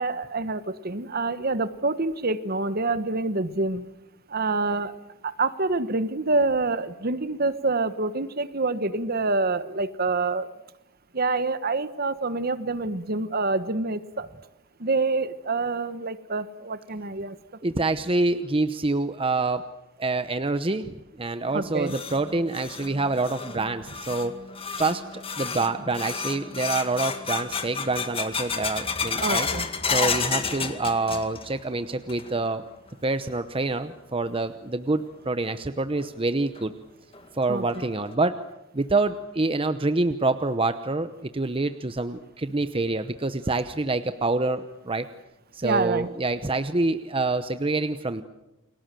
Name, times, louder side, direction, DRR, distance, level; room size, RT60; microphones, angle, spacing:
voice 1, 0.0-3.8 4.3-4.9 5.2-10.5 11.1-14.3 14.8-17.4 21.5-21.9 29.2-29.7 37.5-37.6 45.6-46.1, right 3 dB, 45° right, 12 dB, 1.3 m, -26 dB
voice 2, 17.6-19.6 20.0-24.3 24.8-29.5 29.9-32.6 33.0-36.7 37.3-38.4 38.7-45.1 45.5-48.2, right 2 dB, 25° right, 10 dB, 0.9 m, -26 dB
sound 1, 21.5-31.6 31.9-32.5 32.9-33.0 33.7-33.8 35.4-35.5 36.0-36.1 36.6-36.7 37.1-37.2 37.7-38.1, left 5 dB, 25° left, 2.0 m, -31 dB
30.0 x 22.5 x 7.7 m, 0.93 s
head